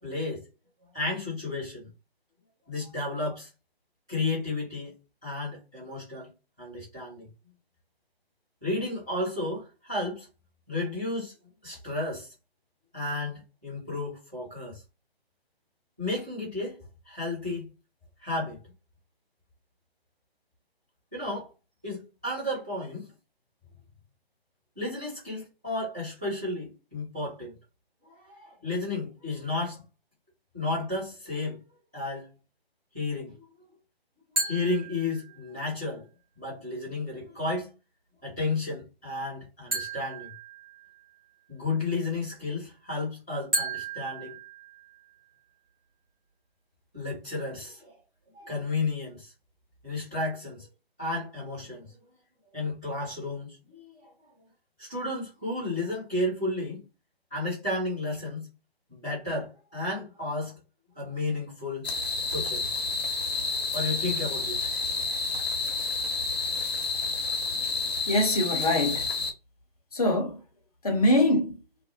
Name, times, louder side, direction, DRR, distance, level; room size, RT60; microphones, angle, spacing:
voice 1, 0.0-0.4 0.9-1.9 2.7-3.5 4.1-4.9 5.2-6.3 6.6-7.3 8.6-10.3 10.7-11.3 11.6-12.3 12.9-14.8 16.0-16.8 17.1-17.7 18.2-18.6 21.1-21.5 21.8-23.1 24.7-27.5 28.1-29.8 30.5-31.6 31.9-32.3 32.9-33.4 34.4-36.1 36.4-37.7 38.2-40.3 41.5-44.4 46.9-47.9 48.3-49.3 49.8-50.7 51.0-51.9 52.5-54.1 54.8-56.8 57.3-58.5 58.9-60.6 60.9-61.9 62.3-62.8 63.7-64.7 67.2-67.4, left 2 dB, 5° right, 0.5 m, -32 dB
sound 1, 34.4-35.7 39.7-41.2 43.5-45.2, right 2 dB, 25° right, 0.9 m, -34 dB
sound 2, 61.8-69.3, left 4 dB, 75° left, 0.9 m, -30 dB
voice 2, 68.1-69.1 69.9-70.4 70.8-71.6, left 1 dB, 40° left, 0.7 m, -23 dB
2.4 x 2.0 x 2.7 m
figure-of-eight pair, 150°, 31 cm